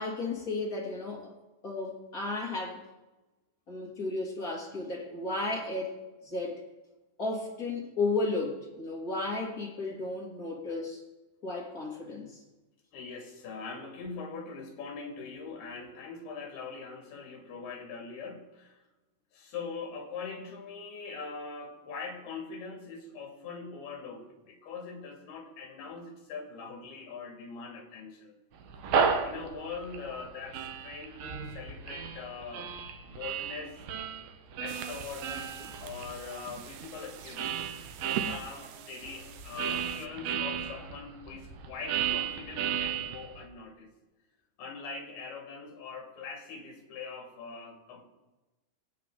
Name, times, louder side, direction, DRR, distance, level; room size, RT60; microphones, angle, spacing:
voice 1, 0.0-1.3 1.6-2.8 3.7-6.0 6.2-6.6 7.2-11.0 11.4-12.4, left 2 dB, 25° left, -2 dB, 2.4 m, -33 dB
voice 2, 12.9-18.8 19.3-28.4 29.2-33.8 34.6-37.6 37.9-43.9 44.6-48.1, left 4 dB, 75° left, 2 dB, 4.3 m, -42 dB
sound 1, 28.6-38.4 39.0-43.5, right 7 dB, 70° right, 2.8 m, -34 dB
sound 2, 34.7-40.1, right 9 dB, 85° right, 1.7 m, -43 dB
24.0 x 8.9 x 3.8 m, 1.1 s
omnidirectional pair, 4.6 m